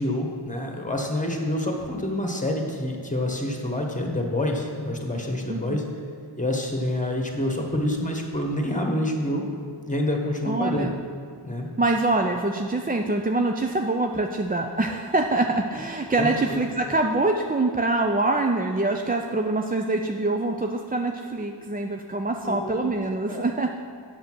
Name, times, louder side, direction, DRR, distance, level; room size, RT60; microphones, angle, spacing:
voice 1, 0.0-5.8 6.4-9.4 9.8-10.9 11.4-11.7 16.2-16.6 22.4-22.9 23.3-23.4, left 1 dB, 15° left, 1 dB, 1.4 m, -27 dB
voice 2, 10.4-10.9 11.8-23.7, right 2 dB, 20° right, 3 dB, 0.4 m, -25 dB
8.0 x 6.5 x 6.2 m, 2.1 s
wide cardioid pair, 60°, 47 cm